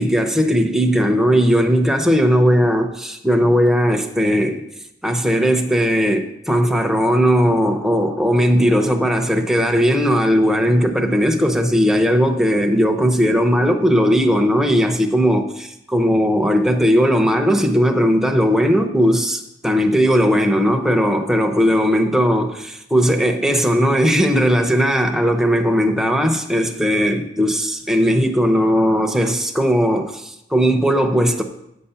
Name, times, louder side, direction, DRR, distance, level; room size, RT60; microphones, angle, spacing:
voice 1, 0.0-4.6 5.0-31.4, equal, 5° right, 0.8 m, -17 dB
9.2 x 6.8 x 5.7 m
head